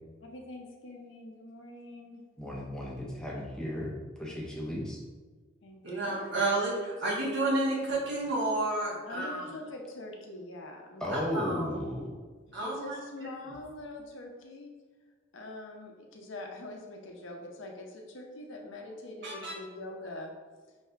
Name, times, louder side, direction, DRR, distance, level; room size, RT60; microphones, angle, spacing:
voice 1, 0.2-2.2 5.6-6.2 9.1-11.2 12.6-14.7 15.3-20.3, left 2 dB, 70° left, 1 dB, 0.7 m, -44 dB
voice 2, 2.4-3.9 4.2-5.0 11.0-12.2, left 1 dB, 5° left, -3 dB, 0.5 m, -35 dB
voice 3, 5.8-9.4 11.1-11.7 12.5-13.5 19.2-19.6, right 2 dB, 60° right, -5 dB, 1.4 m, -31 dB
5.6 x 2.7 x 3.3 m, 1.4 s
head